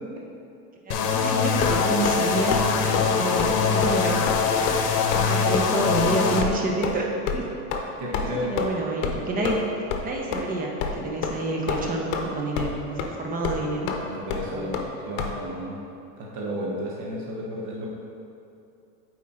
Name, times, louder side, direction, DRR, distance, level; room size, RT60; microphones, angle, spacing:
voice 1, 0.8-2.6 2.9-4.7 5.1-7.1 7.3-7.4 8.1-9.7 10.0-13.9 14.5-14.7, right 2 dB, 20° right, 0 dB, 0.9 m, -29 dB
sound 1, 0.9-6.4, left 5 dB, 80° left, 0.9 m, -23 dB
sound 2, 1.6-2.2 2.5-2.7 2.9-3.1 3.4-3.6 3.8-4.0 4.3-4.4 4.7-4.8 5.1-5.3 5.5-5.6 6.0-6.1 6.4-6.5 6.8-7.0 7.3-7.4 7.7-7.8 8.1-8.3 8.6-8.7 9.0-9.2 9.4-9.6 9.9-10.0 10.3-10.4 10.8-10.9 11.2-11.4 11.7-12.3 12.6-12.7 13.0-13.1 13.4-13.6 13.9-14.0 14.3-14.4 14.7-14.9 15.2-15.3, left 6 dB, 55° left, 0.9 m, -27 dB
voice 2, 8.0-8.5 14.1-15.8 16.2-17.9, equal, 35° right, -3 dB, 1.1 m, -33 dB
8.1 x 4.5 x 3.7 m, 2.6 s
supercardioid pair, 125°, 47 cm